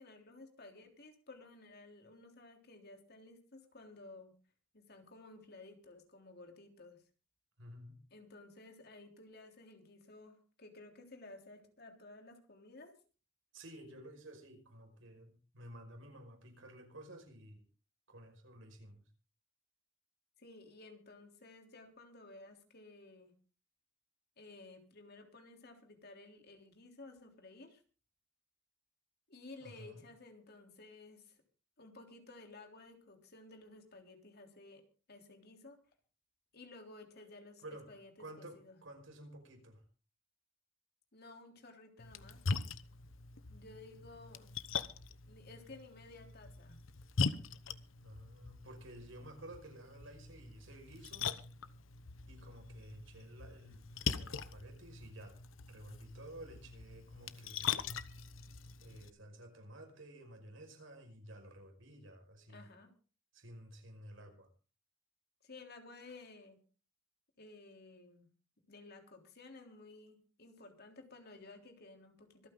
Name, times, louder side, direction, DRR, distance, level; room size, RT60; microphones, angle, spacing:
voice 1, 0.0-4.3 4.7-7.0 8.1-12.9 20.4-23.3 24.4-27.8 29.3-31.4 31.8-34.8 35.1-35.8 36.5-38.1 38.4-38.8 41.1-42.4 43.5-44.5 45.3-46.8 62.5-62.9 65.4-66.6 67.4-68.3 68.7-72.5, left 2 dB, 55° left, 4 dB, 3.5 m, -55 dB
voice 2, 7.6-8.0 13.5-17.6 18.1-19.0 29.6-30.0 37.6-39.8 48.0-51.3 52.3-55.4 55.7-57.9 58.8-62.7 63.3-64.5, right 1 dB, 75° right, 4 dB, 5.4 m, -53 dB
Splash splatter, 42.0-59.1, left 5 dB, 85° left, 1.0 m, -42 dB
25.5 x 9.3 x 3.9 m, 0.36 s
head